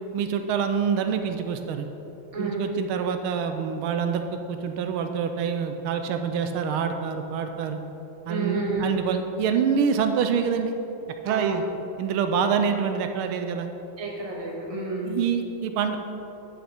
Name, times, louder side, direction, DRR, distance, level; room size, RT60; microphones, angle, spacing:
voice 1, 0.1-1.9 2.4-7.8 8.3-10.8 11.2-11.6 12.0-13.7 15.0-16.0, right 7 dB, 85° right, 7 dB, 1.5 m, -26 dB
voice 2, 2.3-2.6 8.3-8.9 11.2-11.6 14.0-15.1, right 3 dB, 20° right, -2 dB, 1.2 m, -30 dB
10.5 x 6.8 x 4.4 m, 3.0 s
omnidirectional pair, 2.3 m